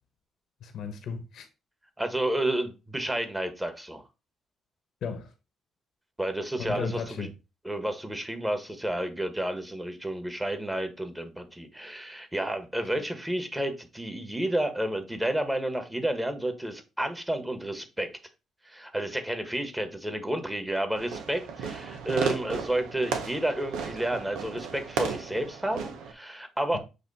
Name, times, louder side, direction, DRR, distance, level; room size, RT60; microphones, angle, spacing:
voice 1, 0.6-1.5 5.0-5.3 6.6-7.3 26.7-26.8, left 5 dB, 70° left, 1.3 m, -35 dB
voice 2, 2.0-4.0 6.2-7.3 7.6-18.2 18.6-26.8, right 1 dB, 10° right, 1.4 m, -31 dB
Fireworks, 21.0-26.1, right 6 dB, 90° right, 1.1 m, -34 dB
8.0 x 2.9 x 4.2 m
cardioid pair, 90°, 0 cm